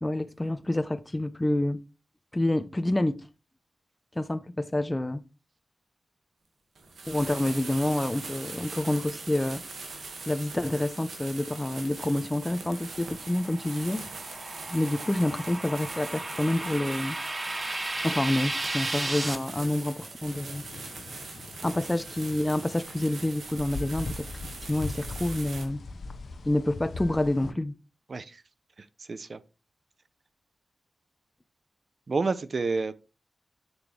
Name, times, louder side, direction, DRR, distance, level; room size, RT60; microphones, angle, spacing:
voice 1, 0.0-1.8 2.3-3.2 4.2-5.2 7.1-9.6 10.3-14.0 14.7-17.2 18.0-20.6 21.6-24.3 24.7-25.8 26.4-27.7, left 1 dB, 25° left, 0.8 m, -28 dB
sound 1, 6.8-25.6, right 3 dB, 90° right, 2.2 m, -42 dB
sound 2, 12.5-19.3, right 2 dB, 35° right, 1.2 m, -35 dB
sound 3, 20.3-27.5, left 3 dB, 75° left, 0.9 m, -41 dB
voice 2, 28.1-28.4 28.8-29.4 32.1-32.9, right 3 dB, 60° right, 0.8 m, -30 dB
7.3 x 6.8 x 3.4 m
cardioid pair, 45°, 0 cm